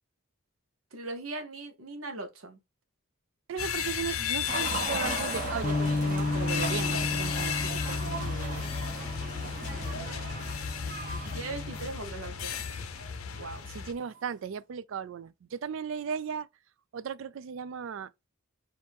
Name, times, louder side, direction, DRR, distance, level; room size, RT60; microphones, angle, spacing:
voice 1, 0.9-2.6 9.7-10.7 11.3-12.6 13.3-13.6, right 2 dB, 80° right, 1.0 m, -40 dB
voice 2, 3.5-8.6 13.7-16.5 16.9-18.1, right 7 dB, 65° right, 0.3 m, -37 dB
sound 1, 3.6-13.9, left 7 dB, 85° left, 0.6 m, -34 dB
sound 2, 4.5-14.2, right 2 dB, 40° right, 1.2 m, -38 dB
Bass guitar, 5.6-11.9, left 2 dB, 25° left, 0.3 m, -34 dB
4.5 x 2.6 x 3.5 m
head